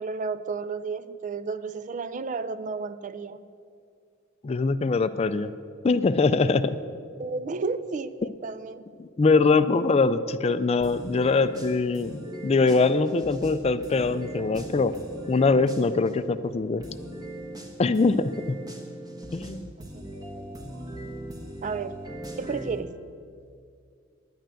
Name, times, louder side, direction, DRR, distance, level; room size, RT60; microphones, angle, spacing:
voice 1, 0.0-3.5 7.2-8.8 19.8-20.6 21.6-22.0 22.4-23.0, right 4 dB, 40° right, 13 dB, 0.4 m, -33 dB
voice 2, 4.4-5.5 5.8-6.8 9.0-15.0 15.3-16.8 17.8-18.6 19.3-19.7, left 4 dB, 30° left, 13 dB, 0.4 m, -23 dB
sound 1, 10.8-16.2 16.8-22.8, right 1 dB, 20° right, 1.2 m, -39 dB
10.0 x 9.2 x 7.6 m, 2.3 s
head